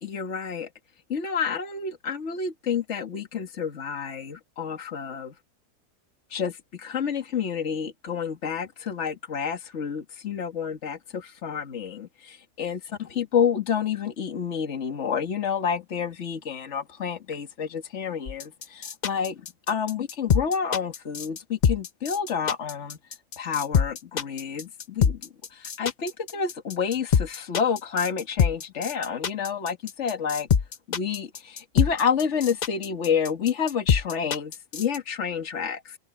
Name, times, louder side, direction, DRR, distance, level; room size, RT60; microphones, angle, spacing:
voice 1, 0.0-0.7 1.1-5.3 6.3-12.8 13.2-19.3 19.7-23.0 23.4-30.5 30.9-36.0, left 7 dB, 45° left, 2.0 m, -29 dB
sound 1, 18.3-35.0, left 7 dB, 70° left, 0.4 m, -24 dB
omnidirectional pair, 1.7 m